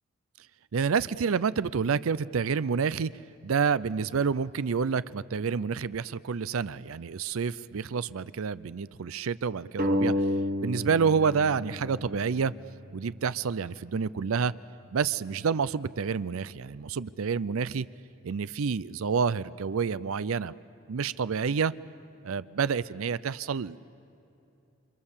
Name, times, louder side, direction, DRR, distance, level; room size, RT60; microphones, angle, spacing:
voice 1, 0.7-3.1 3.4-10.1 10.6-12.5 12.9-14.5 14.9-17.9 18.2-20.5 20.9-21.7 22.2-23.8, right 6 dB, 85° right, 17 dB, 0.5 m, -28 dB
sound 1, 9.8-13.0, left 1 dB, 45° right, 1.1 m, -30 dB
29.0 x 25.5 x 7.3 m, 2.8 s
head